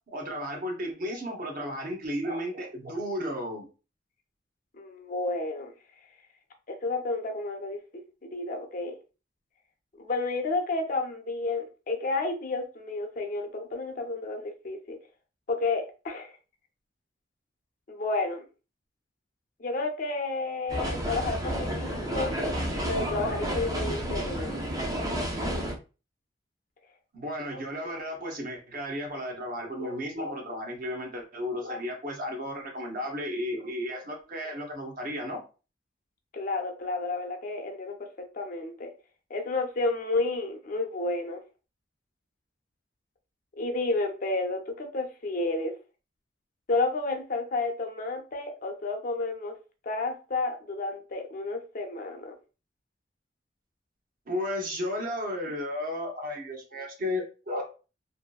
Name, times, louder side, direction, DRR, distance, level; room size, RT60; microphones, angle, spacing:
voice 1, 0.1-3.7 27.1-35.4 54.3-57.6, left 1 dB, 50° right, 0.7 m, -33 dB
voice 2, 4.7-5.7 6.7-9.0 10.0-15.0 15.5-16.3 17.9-18.4 19.6-22.4 22.9-24.6 36.3-38.9 39.3-41.4 43.6-45.7 46.7-49.5 49.8-52.3, left 3 dB, 45° left, 0.5 m, -31 dB
sound 1, 20.7-25.7, equal, 20° right, 0.4 m, -31 dB
2.7 x 2.5 x 2.2 m
head